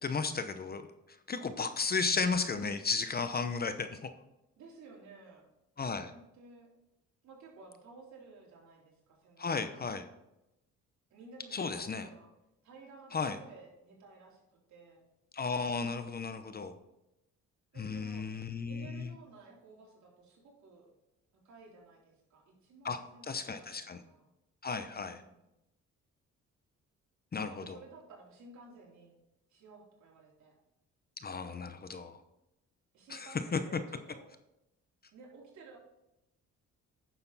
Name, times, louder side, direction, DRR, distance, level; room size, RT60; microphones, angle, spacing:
voice 1, 0.0-4.1 5.8-6.1 9.4-10.1 11.5-12.0 13.1-13.4 15.3-16.8 17.8-19.1 22.8-24.0 24.6-25.2 27.3-27.8 31.2-32.2 33.1-33.6, left 4 dB, 30° left, 10 dB, 0.8 m, -34 dB
voice 2, 1.4-1.8 4.6-5.5 6.1-6.7 7.2-9.5 11.1-12.3 12.6-15.0 17.7-18.3 18.6-20.9 21.4-24.3 24.8-25.5 27.3-29.1 29.5-30.5 32.9-34.3 35.1-35.8, right 3 dB, 70° right, -3 dB, 3.6 m, -55 dB
9.9 x 6.7 x 4.1 m, 0.89 s
cardioid pair, 90°, 30 cm